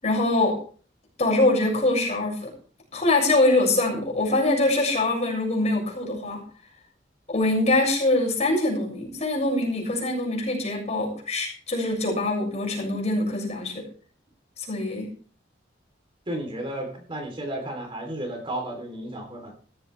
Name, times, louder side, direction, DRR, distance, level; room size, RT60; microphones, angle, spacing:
voice 1, 0.0-0.6 1.2-2.5 2.9-6.4 7.3-13.8 14.6-15.1, left 2 dB, 40° left, 0 dB, 6.7 m, -23 dB
voice 2, 16.3-19.5, right 1 dB, 30° right, 3 dB, 3.6 m, -33 dB
16.0 x 14.5 x 3.5 m, 0.44 s
head